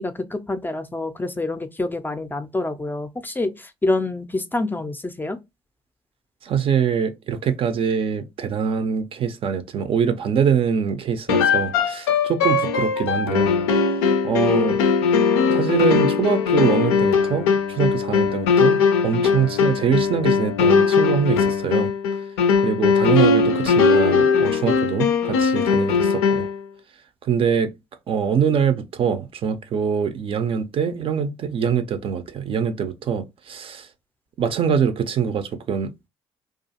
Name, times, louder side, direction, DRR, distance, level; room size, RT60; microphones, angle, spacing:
voice 1, 0.0-5.4, left 2 dB, 15° left, 0.4 m, -27 dB
voice 2, 6.4-13.6 14.2-14.8 15.5-21.9 22.6-26.5 27.2-27.7 28.1-33.9 34.4-36.1, right 7 dB, 45° right, 0.4 m, -23 dB
sound 1, 11.3-26.6, left 5 dB, 80° left, 0.4 m, -19 dB
2.4 x 2.3 x 2.7 m
hypercardioid pair, 50°, 13 cm